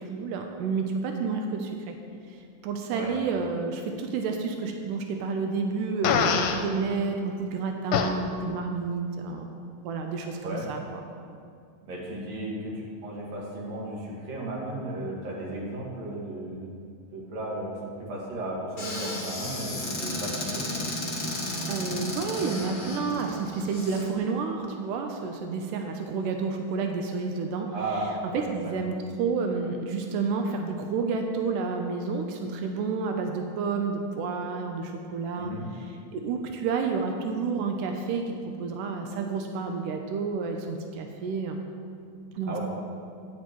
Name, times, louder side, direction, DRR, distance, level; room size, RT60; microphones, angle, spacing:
voice 1, 0.0-2.0 2.3-9.5 9.8-11.0 21.7-27.7 28.3-41.6 42.4-42.6, right 4 dB, 90° right, 4 dB, 2.2 m, -30 dB
Fart, 6.0-6.6 7.9-8.1, left 7 dB, 80° left, 2.0 m, -23 dB
voice 2, 11.8-16.7 17.1-20.7 27.5-28.1 28.3-28.7 35.4-35.6 42.5-42.6, right 1 dB, 60° right, -4 dB, 2.8 m, -35 dB
Squeak / Cupboard open or close, 18.8-24.0, left 1 dB, 35° left, 0.8 m, -33 dB
11.0 x 9.5 x 3.0 m, 2.3 s
omnidirectional pair, 3.6 m